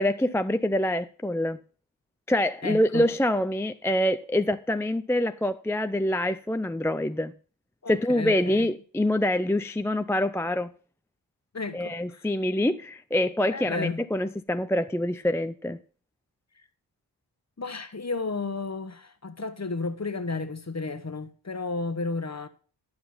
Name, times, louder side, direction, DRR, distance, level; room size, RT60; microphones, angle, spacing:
voice 1, 0.0-1.6 2.3-7.3 7.9-10.7 11.7-15.8, left 1 dB, 5° left, 0.4 m, -25 dB
voice 2, 2.6-3.1 7.8-8.7 11.5-12.2 13.5-14.0 17.6-22.5, left 3 dB, 35° left, 1.1 m, -33 dB
11.5 x 5.9 x 5.6 m
wide cardioid pair, 55°, 46 cm